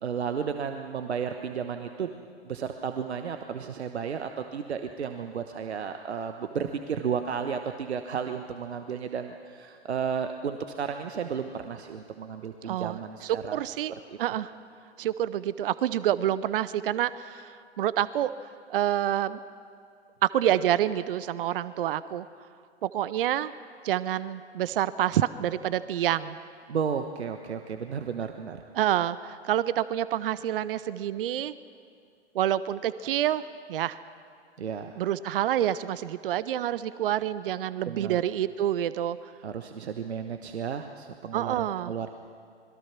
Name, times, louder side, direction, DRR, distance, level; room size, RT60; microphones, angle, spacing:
voice 1, 0.0-2.1 2.4-13.6 14.1-14.2 26.7-28.6 34.6-35.0 37.9-38.2 39.4-42.1, right 7 dB, 70° right, 7 dB, 1.2 m, -33 dB
voice 2, 12.6-13.9 14.2-14.5 15.0-18.3 18.7-19.4 20.2-22.3 22.8-23.5 23.8-26.4 28.7-31.5 32.3-33.4 33.7-34.0 35.0-39.2 41.3-41.9, right 11 dB, 55° right, 16 dB, 0.7 m, -27 dB
26.0 x 21.5 x 6.0 m, 2.3 s
figure-of-eight pair, 105°, 34 cm